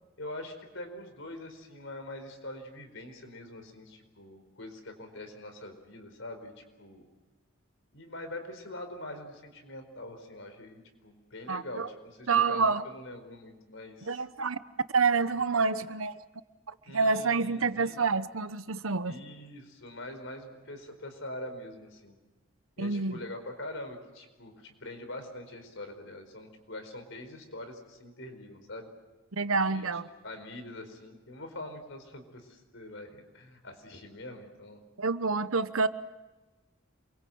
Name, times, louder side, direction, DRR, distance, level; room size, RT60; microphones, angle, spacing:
voice 1, 0.2-7.0 7.9-14.2 16.8-18.0 19.0-22.1 22.8-28.9 29.6-29.9 30.2-34.8, left 1 dB, 65° left, 6 dB, 4.7 m, -44 dB
voice 2, 11.5-11.9 12.3-12.8 14.0-14.6 14.9-16.2 16.7-19.2 22.8-23.2 29.3-30.1 35.0-35.9, right 4 dB, 85° right, 13 dB, 1.1 m, -28 dB
28.0 x 23.5 x 7.9 m, 1.2 s
head